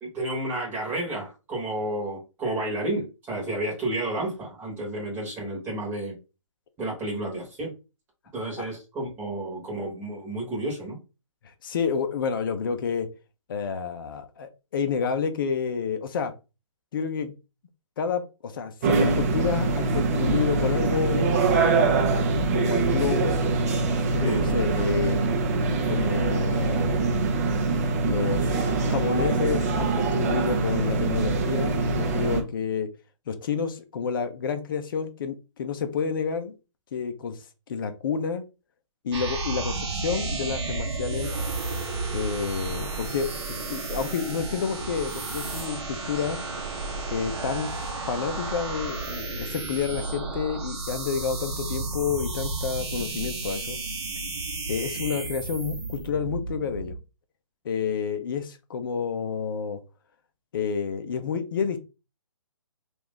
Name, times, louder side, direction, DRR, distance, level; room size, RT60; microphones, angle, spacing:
voice 1, 0.0-6.2 6.8-7.7 8.3-11.0 24.2-24.4, right 1 dB, 10° right, -3 dB, 1.1 m, -31 dB
voice 2, 11.6-13.1 13.5-16.3 16.9-17.3 18.0-23.3 23.9-25.2 25.9-27.2 28.0-32.9 33.3-36.5 36.9-37.4 37.7-38.4 39.0-41.3 42.1-43.3 43.7-46.4 47.1-47.7 48.1-53.8 54.7-57.0 57.6-59.8 60.5-61.8, left 6 dB, 40° left, 8 dB, 0.6 m, -29 dB
sound 1, 18.8-32.4, right 3 dB, 30° right, 0.6 m, -24 dB
sound 2, 39.1-57.0, right 3 dB, 55° right, 0.9 m, -32 dB
3.0 x 2.5 x 3.6 m, 0.29 s
hypercardioid pair, 155°, 17 cm